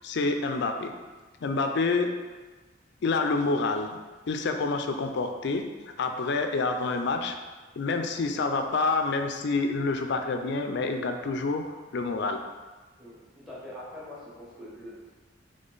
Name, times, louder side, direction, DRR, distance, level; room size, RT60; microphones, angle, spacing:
voice 1, 0.0-0.9 1.4-2.1 3.0-4.0 4.3-7.4 7.8-12.4, left 3 dB, 60° left, 5 dB, 0.4 m, -28 dB
voice 2, 13.0-15.1, left 1 dB, ahead, -8 dB, 1.3 m, -43 dB
3.9 x 3.3 x 3.9 m, 1.3 s
head